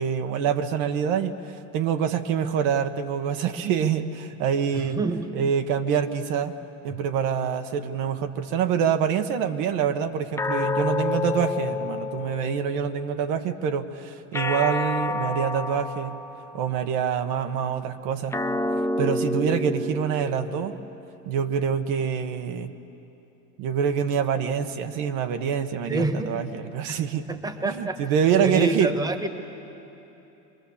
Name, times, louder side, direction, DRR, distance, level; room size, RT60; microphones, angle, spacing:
voice 1, 0.0-5.0 5.3-6.5 6.8-16.2 16.5-18.4 19.0-20.8 21.3-22.7 23.6-27.2 27.6-28.9, right 7 dB, 65° right, 7 dB, 1.3 m, -26 dB
voice 2, 4.7-5.2 25.9-26.3 26.9-27.0 27.3-28.0 28.4-29.3, right 2 dB, 10° right, 7 dB, 1.5 m, -27 dB
sound 1, 10.4-13.0 14.3-16.9 18.3-20.9, left 2 dB, 10° left, 0.5 m, -29 dB
25.5 x 22.0 x 7.2 m, 3.0 s
supercardioid pair, 120°, 37 cm